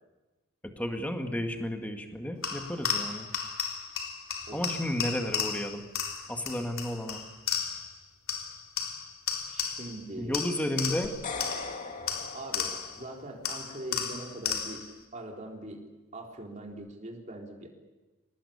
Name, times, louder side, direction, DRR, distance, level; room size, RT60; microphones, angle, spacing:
voice 1, 0.6-3.3 4.5-5.8 6.3-7.2 10.2-11.1, left 1 dB, 5° left, 4 dB, 2.0 m, -32 dB
sound 1, 2.4-8.0 8.3-10.0 10.3-13.0 13.4-14.9, left 7 dB, 65° left, 3.7 m, -34 dB
voice 2, 9.5-10.5 10.8-11.0 12.3-15.8 16.1-17.7, right 1 dB, 30° right, 0 dB, 4.0 m, -42 dB
sound 2, 11.0-13.3, left 4 dB, 35° left, 2.8 m, -39 dB
26.0 x 19.5 x 8.7 m, 1.2 s
head